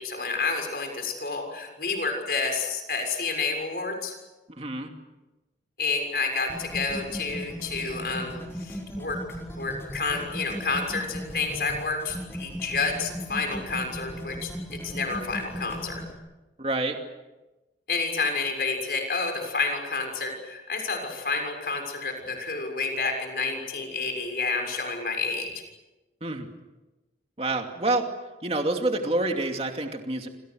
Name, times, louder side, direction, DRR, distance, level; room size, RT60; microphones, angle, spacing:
voice 1, 0.0-4.1 5.8-9.2 9.6-16.0 17.9-25.5, left 4 dB, 55° left, 3 dB, 6.6 m, -29 dB
voice 2, 4.5-4.9 16.6-17.0 26.2-26.5 27.4-28.1 28.4-30.3, right 2 dB, 35° right, 4 dB, 2.7 m, -27 dB
sound 1, 6.5-16.1, equal, 15° left, 5.9 m, -37 dB
28.5 x 27.0 x 6.5 m, 1.1 s
head